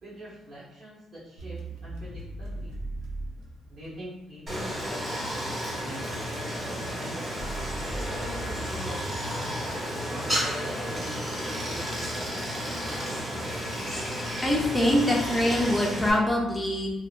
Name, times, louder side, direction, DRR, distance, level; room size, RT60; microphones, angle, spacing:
voice 1, 0.0-2.8 3.7-7.5 8.0-11.2 11.5-12.4, equal, 55° right, -9 dB, 1.2 m, -44 dB
sound 1, 1.4-4.4 7.4-10.8, right 1 dB, 85° right, 0.5 m, -39 dB
Stream, 4.5-16.1, equal, 20° right, 0.9 m, -32 dB
voice 2, 14.4-16.9, left 1 dB, 10° left, -2 dB, 0.6 m, -24 dB
2.8 x 2.1 x 2.5 m, 0.94 s
cardioid pair, 90°, 0 cm